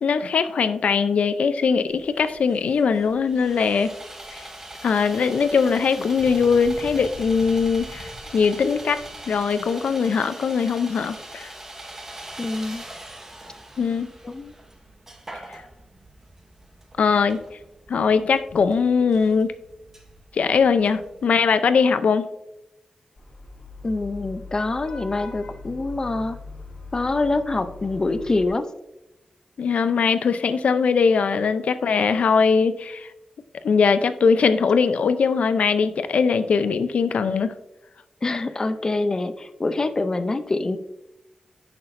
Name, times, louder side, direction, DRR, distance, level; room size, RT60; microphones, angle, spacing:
voice 1, 0.0-3.9 4.3-4.4 4.8-9.0 9.3-11.5 13.8-14.1 17.0-17.4 17.9-19.5 20.3-22.3 29.6-33.1 33.6-37.5, left 5 dB, 75° left, 11 dB, 0.5 m, -21 dB
Sawing, 1.9-21.3, right 1 dB, 20° right, 0.9 m, -42 dB
sound 1, 6.2-10.8, equal, ahead, 1.9 m, -43 dB
voice 2, 12.4-12.8 14.2-14.5 23.8-26.4 26.9-28.6 38.2-40.8, left 2 dB, 30° left, 9 dB, 0.5 m, -25 dB
Vehicle horn car horn honking / Traffic noise roadway noise, 23.2-28.5, left 3 dB, 55° left, 1.8 m, -40 dB
9.7 x 6.0 x 2.6 m, 0.89 s
wide cardioid pair, 130°, 2 cm